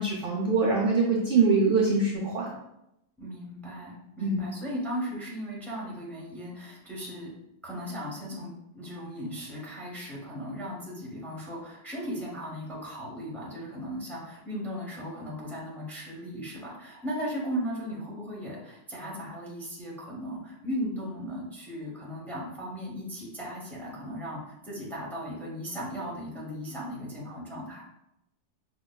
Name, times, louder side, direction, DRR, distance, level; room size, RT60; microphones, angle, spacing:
voice 1, 0.0-2.5 4.2-4.4, right 4 dB, 65° right, -2 dB, 0.5 m, -24 dB
voice 2, 3.2-7.3 7.6-27.8, equal, ahead, -5 dB, 0.6 m, -37 dB
5.3 x 2.2 x 2.2 m, 0.85 s
omnidirectional pair, 1.4 m